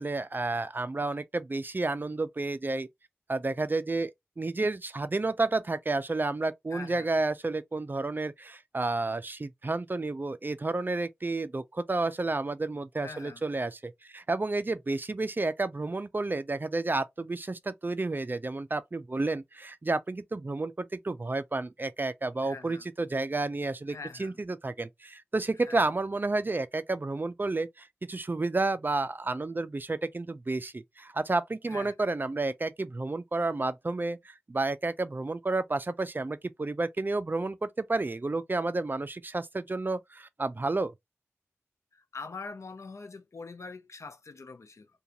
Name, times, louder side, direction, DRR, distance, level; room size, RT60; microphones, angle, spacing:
voice 1, 0.0-2.9 3.3-40.9, right 2 dB, 40° right, 0.4 m, -31 dB
voice 2, 6.7-7.1 13.0-13.4 22.4-22.8 23.9-24.4 25.7-25.8 31.7-31.9 41.9-44.9, left 4 dB, 70° left, 0.4 m, -43 dB
2.5 x 2.3 x 2.8 m
wide cardioid pair, 55°, 5 cm